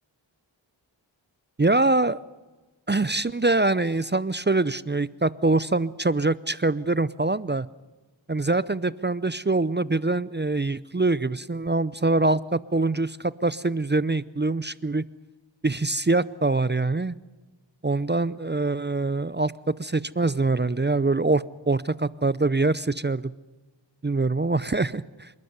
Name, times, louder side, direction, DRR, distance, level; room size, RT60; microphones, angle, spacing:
voice 1, 1.6-2.2 2.9-7.7 8.3-15.0 15.6-17.2 17.8-23.3 24.0-25.0, right 2 dB, 25° right, 18 dB, 0.6 m, -24 dB
27.0 x 12.0 x 9.5 m, 1.2 s
wide cardioid pair, 45°, 46 cm